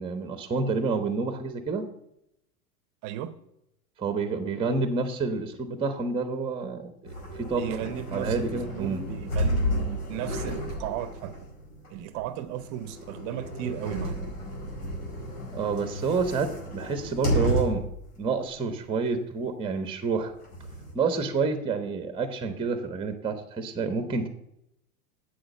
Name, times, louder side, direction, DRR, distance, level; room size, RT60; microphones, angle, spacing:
voice 1, 0.0-1.9 4.0-9.0 15.5-17.9 18.2-20.3 20.9-24.3, right 4 dB, 10° right, 8 dB, 1.0 m, -29 dB
voice 2, 3.0-3.4 7.6-11.3 11.9-14.2, right 11 dB, 40° right, 13 dB, 0.8 m, -35 dB
sound 1, 7.0-18.0 18.5-18.6 20.1-20.9, equal, 75° left, 5.0 m, -32 dB
8.2 x 6.2 x 8.2 m, 0.79 s
hypercardioid pair, 110°, 46 cm